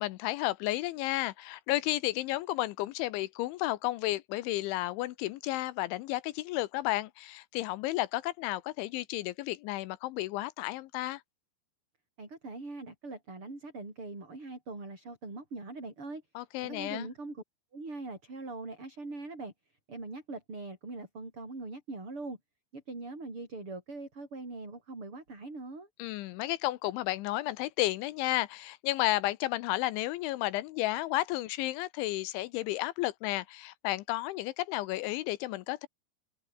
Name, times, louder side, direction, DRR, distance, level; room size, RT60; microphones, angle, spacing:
voice 1, 0.0-11.2 16.4-17.1 26.0-35.9, left 17 dB, 85° left, 3.1 m, -32 dB
voice 2, 12.2-16.2 16.6-17.4 17.7-19.5 19.9-22.4 22.7-25.9, right 3 dB, 25° right, 8.6 m, -42 dB
open air
omnidirectional pair, 5.7 m